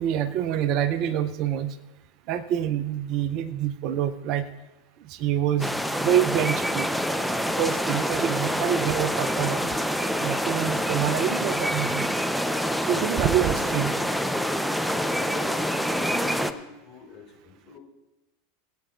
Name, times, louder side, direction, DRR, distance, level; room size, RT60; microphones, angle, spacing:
voice 1, 0.0-1.8 2.3-4.5 5.1-6.9 7.6-9.6 10.2-12.1 12.9-14.0, right 10 dB, 50° right, 13 dB, 0.5 m, -26 dB
sound 1, 5.6-16.5, equal, ahead, 0.6 m, -26 dB
voice 2, 15.2-17.8, left 4 dB, 45° left, -1 dB, 4.0 m, -46 dB
22.0 x 8.6 x 2.5 m, 1.0 s
figure-of-eight pair, 85°, 0 cm